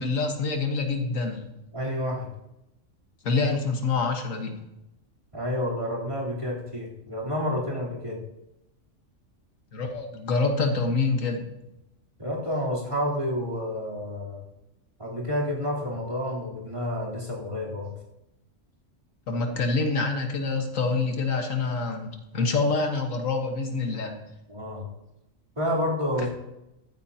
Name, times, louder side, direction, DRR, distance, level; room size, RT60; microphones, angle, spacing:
voice 1, 0.0-1.4 3.2-4.6 9.7-11.4 19.3-24.1, left 3 dB, 90° left, 3 dB, 1.9 m, -26 dB
voice 2, 1.7-2.3 5.3-8.2 12.2-14.4 15.0-17.9 24.5-24.9 25.6-26.3, left 1 dB, 25° right, -6 dB, 3.7 m, -29 dB
14.5 x 14.0 x 2.9 m, 0.91 s
omnidirectional pair, 1.3 m